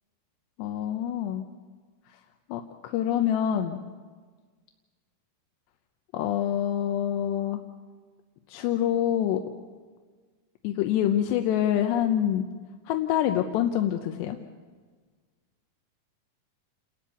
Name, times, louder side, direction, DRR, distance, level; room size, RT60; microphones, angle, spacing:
voice 1, 0.6-1.5 2.5-3.8 6.1-7.6 8.5-9.5 10.6-12.5 12.9-14.4, left 10 dB, 75° left, 5 dB, 2.8 m, -26 dB
29.5 x 13.0 x 8.4 m, 1.5 s
omnidirectional pair, 5.5 m